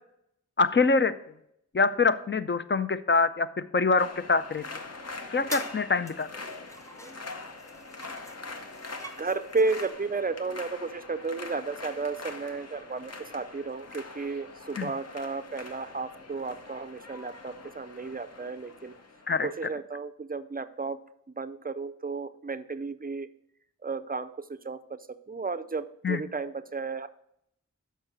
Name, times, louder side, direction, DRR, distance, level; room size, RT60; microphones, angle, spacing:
voice 1, 0.6-1.1 1.7-4.6 5.3-6.4 14.8-14.9 19.3-19.5 26.0-26.2, left 4 dB, 40° left, 11 dB, 0.5 m, -25 dB
sound 1, 4.0-19.5, left 3 dB, 55° left, 0.9 m, -43 dB
sound 2, 5.5-5.8 6.1-9.9, equal, 10° left, 0.8 m, -44 dB
voice 2, 9.2-18.9 19.4-23.3 23.8-27.1, right 4 dB, 30° right, 11 dB, 0.5 m, -33 dB
6.4 x 5.5 x 6.0 m, 0.75 s
wide cardioid pair, 70°, 31 cm